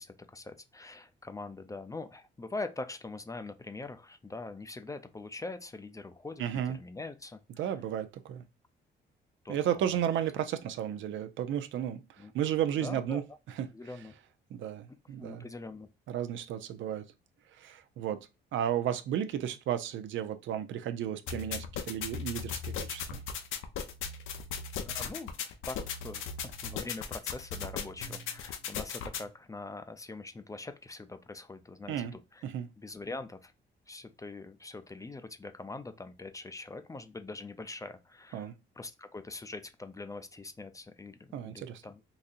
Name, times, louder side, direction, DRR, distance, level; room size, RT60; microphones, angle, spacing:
voice 1, 0.0-7.8 9.4-9.9 12.2-12.3 12.8-13.2 13.7-14.1 15.0-15.9 24.9-25.3 25.6-25.8 26.0-32.1 32.3-32.5 32.8-33.5 33.9-42.0, left 3 dB, 15° left, 0.4 m, -43 dB
voice 2, 6.4-6.8 7.6-8.4 9.5-12.0 12.3-13.2 14.5-15.4 16.1-17.1 17.6-23.2 31.9-32.2 32.4-32.7 38.3-38.6 41.3-41.8, right 10 dB, 75° right, 0.5 m, -33 dB
sound 1, 21.3-29.3, left 7 dB, 85° left, 0.6 m, -38 dB
4.0 x 2.7 x 2.5 m
cardioid pair, 90°, 20 cm